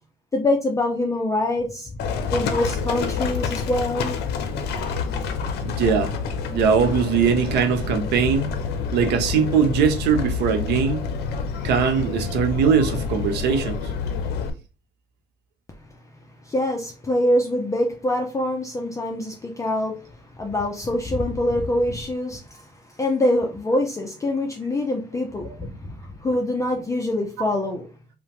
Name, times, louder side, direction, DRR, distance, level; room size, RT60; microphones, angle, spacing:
voice 1, 0.3-4.2 15.8-27.9, left 1 dB, 20° left, 0.4 m, -25 dB
Livestock farm animals working animals, 2.0-14.5, left 5 dB, 75° left, 0.5 m, -28 dB
voice 2, 5.6-6.1 6.5-8.5 8.9-11.0 11.6-13.9, right 6 dB, 75° right, 0.6 m, -21 dB
2.8 x 2.1 x 2.9 m
cardioid pair, 110°, 17 cm